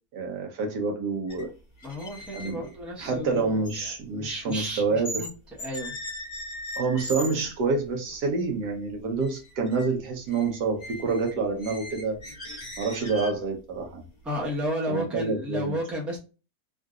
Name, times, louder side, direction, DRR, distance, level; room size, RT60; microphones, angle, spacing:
voice 1, 0.1-1.5 2.3-2.6 3.0-5.1 6.8-12.2 12.8-14.1 14.9-15.8, right 4 dB, 75° right, 1.4 m, -27 dB
sound 1, 1.3-1.5 1.8-5.3 5.6-7.5 8.1-8.2 8.6-8.9 9.2-9.9 10.1-13.5, equal, 35° left, 0.7 m, -39 dB
voice 2, 1.8-5.3 5.6-5.9 14.2-16.2, equal, ahead, 0.8 m, -33 dB
3.7 x 2.5 x 2.3 m
omnidirectional pair, 1.8 m